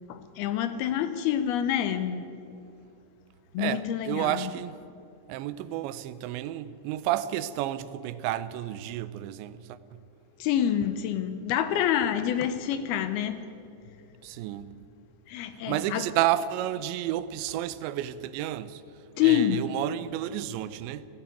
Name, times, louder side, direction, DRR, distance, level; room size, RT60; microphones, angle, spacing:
voice 1, 0.1-2.3 3.5-4.5 10.4-13.4 15.3-16.1 19.2-19.7, left 10 dB, 75° left, 2.4 m, -27 dB
voice 2, 3.6-4.8 5.3-10.0 14.2-14.7 15.7-18.8 19.2-21.1, right 13 dB, 85° right, 3.0 m, -31 dB
18.0 x 15.5 x 9.3 m
omnidirectional pair, 5.1 m